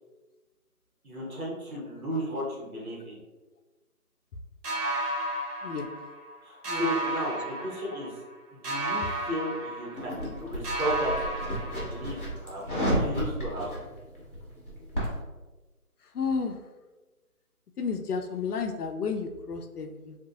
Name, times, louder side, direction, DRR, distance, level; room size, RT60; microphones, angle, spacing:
voice 1, 1.0-3.2 6.4-8.1 8.5-11.3 11.7-13.7, equal, 65° right, -3 dB, 1.1 m, -34 dB
sound 1, 4.6-6.4 6.6-8.3 8.6-10.4 10.6-12.3, right 1 dB, 85° right, 0.8 m, -33 dB
sound 2, 9.9-15.2, equal, 35° left, 0.8 m, -32 dB
voice 2, 16.1-16.6 17.8-20.2, left 5 dB, 80° left, 5 dB, 0.5 m, -32 dB
2.7 x 2.4 x 2.5 m, 1.2 s
figure-of-eight pair, 175°, 45 cm